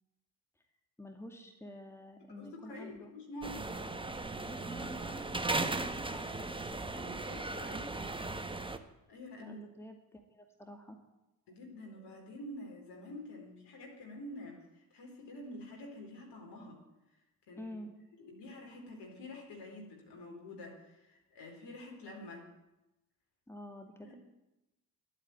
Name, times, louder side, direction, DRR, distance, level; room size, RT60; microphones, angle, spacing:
voice 1, 1.0-3.1 4.4-6.5 7.6-7.9 9.4-11.0 17.6-17.9 23.5-24.2, left 1 dB, 5° left, 4 dB, 2.2 m, -48 dB
voice 2, 2.3-3.7 7.0-7.9 9.1-9.6 11.5-16.8 17.5-17.7 18.2-22.5 24.0-24.2, left 1 dB, 60° left, 0 dB, 4.4 m, -48 dB
sound 1, 3.4-8.8, right 2 dB, 10° right, 1.2 m, -37 dB
12.0 x 8.4 x 9.7 m, 0.98 s
hypercardioid pair, 45°, 47 cm